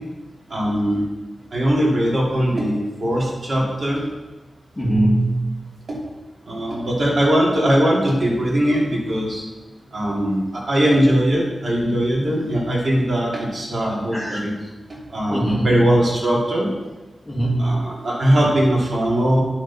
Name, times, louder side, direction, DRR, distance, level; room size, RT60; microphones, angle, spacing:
voice 1, 0.5-1.0 1.5-4.0 5.9-6.0 6.5-9.4 9.9-14.5 14.9-16.7 17.6-19.4, equal, 50° right, -5 dB, 2.8 m, -20 dB
voice 2, 4.8-5.6 14.1-14.4 15.3-16.0 17.3-17.9, right 1 dB, 10° left, -4 dB, 2.3 m, -21 dB
9.9 x 6.7 x 4.2 m, 1.2 s
wide cardioid pair, 135°, 0 cm